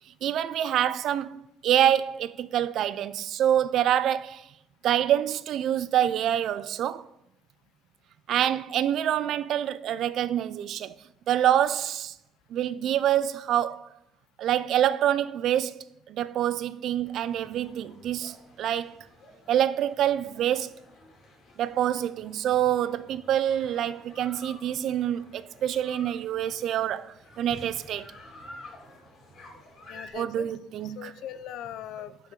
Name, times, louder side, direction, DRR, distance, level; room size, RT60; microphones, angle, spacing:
voice 1, 0.2-4.4 4.8-7.0 8.3-11.0 11.3-12.1 12.5-13.9 14.4-19.0 19.5-20.7 21.6-28.1 30.1-31.1, right 11 dB, 55° right, 0.3 m, -26 dB
sound 1, 17.0-30.1, left 2 dB, 45° left, 2.4 m, -50 dB
voice 2, 29.9-30.5 30.8-32.3, left 11 dB, 65° left, 0.4 m, -40 dB
11.0 x 5.3 x 3.8 m
cardioid pair, 155°, 0 cm